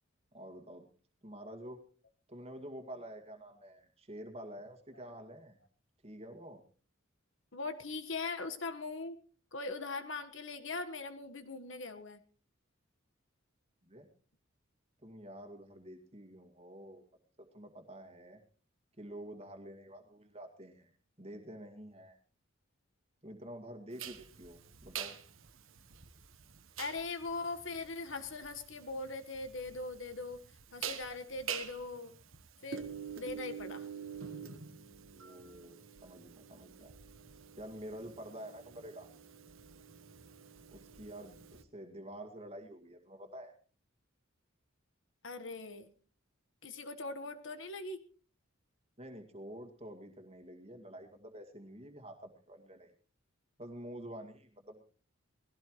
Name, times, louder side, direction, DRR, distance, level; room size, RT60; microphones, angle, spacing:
voice 1, 0.3-0.9 1.2-1.8 2.3-5.6 6.0-6.6 13.8-14.1 15.0-17.0 17.4-18.4 19.0-20.9 21.2-22.2 23.2-25.2 35.1-36.9 37.6-39.1 40.7-43.5 49.0-52.9 53.6-54.8, right 1 dB, 30° right, 5 dB, 2.2 m, -48 dB
voice 2, 7.5-9.2 9.5-12.2 26.8-30.4 30.7-32.1 32.6-32.8 33.1-33.9 45.2-45.9 46.6-48.0, left 3 dB, 65° left, 9 dB, 1.5 m, -40 dB
sound 1, 24.0-41.6, right 8 dB, 75° right, 1.2 m, -46 dB
20.0 x 16.0 x 3.2 m, 0.41 s
head